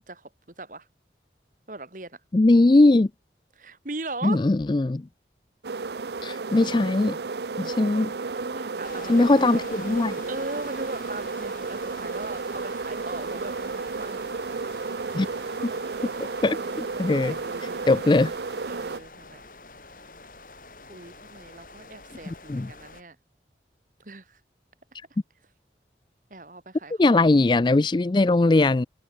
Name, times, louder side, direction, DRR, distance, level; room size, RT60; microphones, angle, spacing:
voice 1, 1.7-2.2 3.6-4.5 7.6-7.9 8.3-9.6 10.1-14.2 16.5-17.9 18.7-19.4 20.9-23.2 24.0-24.4 26.3-27.2, right 2 dB, 45° right, 2.2 m, -39 dB
voice 2, 2.3-3.1 4.2-5.0 6.2-7.2 7.6-8.1 9.1-10.1 15.1-15.3 15.6-15.7 16.4-17.4 17.9-18.3 22.3-22.7 27.0-28.9, left 2 dB, 25° left, 0.4 m, -20 dB
sound 1, 5.6-19.0, right 4 dB, 70° right, 0.6 m, -33 dB
sound 2, 8.8-23.0, left 3 dB, 50° left, 4.7 m, -47 dB
head